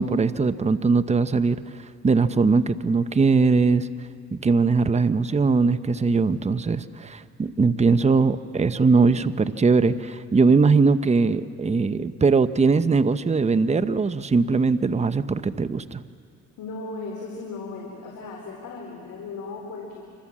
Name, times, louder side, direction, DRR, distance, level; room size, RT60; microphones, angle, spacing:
voice 1, 0.0-1.6 2.0-3.9 4.3-16.0, right 4 dB, 20° right, 12 dB, 0.8 m, -20 dB
voice 2, 16.6-20.0, left 3 dB, 75° left, -1 dB, 4.1 m, -36 dB
26.0 x 25.5 x 7.4 m, 2.3 s
cardioid pair, 90°, 30 cm